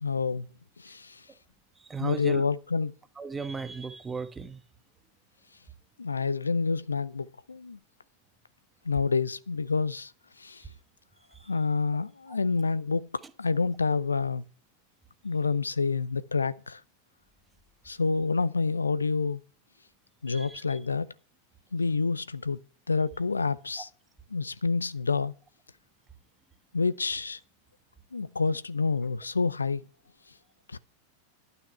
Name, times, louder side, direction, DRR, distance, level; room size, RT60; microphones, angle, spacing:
voice 1, 0.0-0.5 0.8-1.3 2.0-2.9 6.0-7.8 8.8-10.1 10.4-10.7 11.5-14.4 15.2-16.8 17.8-19.4 20.2-21.1 21.7-23.9 24.3-25.3 26.7-27.4 28.1-29.9 30.7-30.8, left 4 dB, 75° left, 0.5 m, -28 dB
voice 2, 1.8-2.4 3.2-4.6 10.6-10.7 11.3-11.5 20.3-20.8, right 4 dB, 15° right, 1.2 m, -37 dB
12.0 x 9.0 x 5.7 m
figure-of-eight pair, 90°, 0 cm